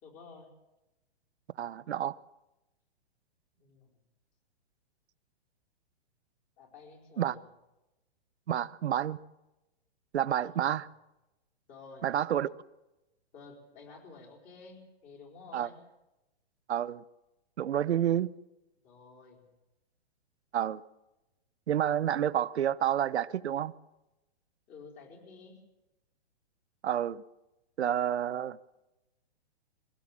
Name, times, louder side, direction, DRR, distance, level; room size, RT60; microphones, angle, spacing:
voice 1, 0.0-0.5 3.6-4.0 6.6-7.4 10.4-10.5 11.7-12.1 13.3-15.8 18.8-19.5 24.7-25.6, left 4 dB, 25° left, 4.5 m, -51 dB
voice 2, 1.6-2.2 7.2-7.4 8.5-9.2 10.1-10.9 12.0-12.5 15.5-15.7 16.7-17.0 17.6-18.3 20.5-20.8 21.7-23.7 26.8-27.2 27.8-28.6, right 10 dB, 85° right, 0.8 m, -29 dB
22.5 x 17.0 x 7.4 m
hypercardioid pair, 160°, 32 cm